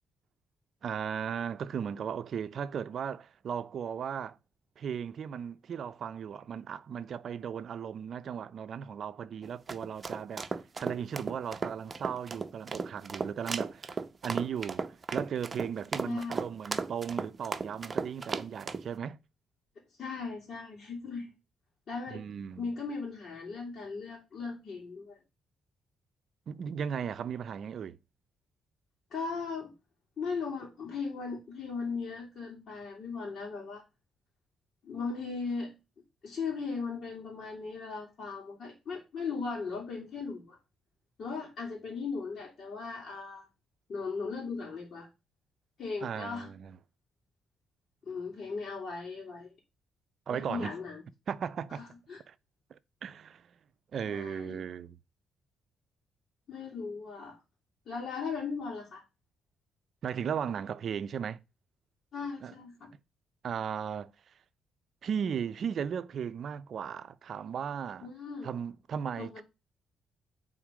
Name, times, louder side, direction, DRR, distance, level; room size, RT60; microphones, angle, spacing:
voice 1, 0.8-4.4 4.8-10.5 10.8-13.9 14.2-19.2 22.1-22.7 26.5-28.0 46.0-46.8 50.3-50.7 51.3-51.8 52.3-52.4 52.7-53.4 53.9-55.0 60.0-61.4 62.4-62.5 63.4-64.1 65.0-68.1 68.4-69.4, right 7 dB, 60° right, 0.6 m, -36 dB
sound 1, 9.4-18.8, right 4 dB, 30° right, 0.8 m, -35 dB
voice 2, 20.0-21.3 21.9-22.3 22.6-25.2 29.1-29.7 30.2-33.8 34.8-35.8 36.2-40.6 41.2-43.4 43.9-45.1 45.8-46.5 48.0-49.5 50.3-51.0 51.7-52.2 54.1-54.6 56.5-57.4 57.9-59.0 62.1-62.9 68.0-68.5 69.2-69.4, left 4 dB, 55° left, 2.8 m, -38 dB
8.9 x 3.9 x 5.0 m
cardioid pair, 90°, 0 cm